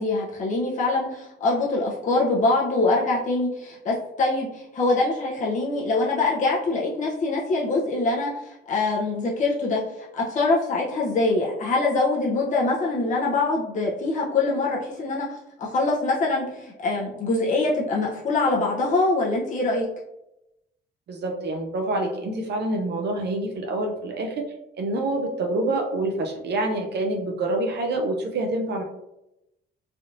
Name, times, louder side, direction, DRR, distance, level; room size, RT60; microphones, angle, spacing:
voice 1, 0.0-19.9, left 3 dB, 40° left, -4 dB, 0.6 m, -24 dB
voice 2, 21.1-24.4 24.8-28.8, right 2 dB, 60° right, 2 dB, 0.5 m, -26 dB
3.3 x 2.6 x 2.5 m, 0.88 s
cardioid pair, 90°, 20 cm